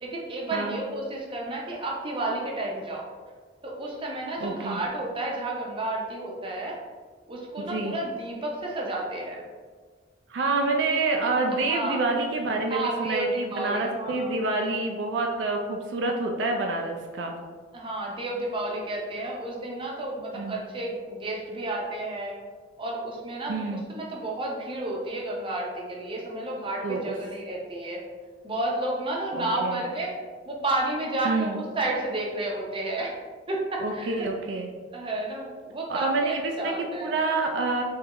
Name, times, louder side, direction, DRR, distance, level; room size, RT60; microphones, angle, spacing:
voice 1, 0.0-3.1 3.6-6.8 7.3-9.4 11.7-12.0 12.7-14.3 17.7-22.4 22.8-28.0 28.4-30.1 30.5-33.1 33.5-34.3 34.9-37.1, right 2 dB, 30° right, -2 dB, 0.7 m, -31 dB
voice 2, 4.4-4.8 7.6-8.0 10.3-17.3 20.3-20.6 23.5-23.8 26.8-27.1 29.3-29.8 31.2-31.6 33.8-34.7 35.9-37.8, right 3 dB, 75° right, 2 dB, 0.4 m, -27 dB
3.6 x 3.2 x 2.9 m, 1.5 s
head